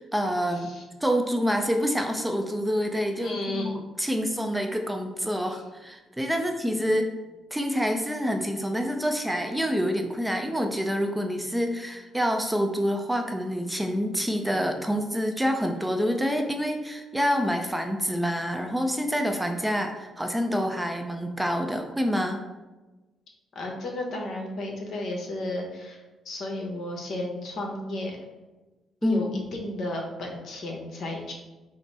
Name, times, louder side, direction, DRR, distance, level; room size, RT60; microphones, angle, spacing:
voice 1, 0.0-0.7 1.0-7.1 7.5-22.4 29.0-29.5, equal, 5° right, 3 dB, 0.4 m, -27 dB
voice 2, 0.5-0.8 3.2-3.8 23.5-28.2 29.0-31.3, left 1 dB, 60° left, 1 dB, 0.9 m, -33 dB
5.1 x 2.0 x 4.1 m, 1.2 s
cardioid pair, 90°, 0 cm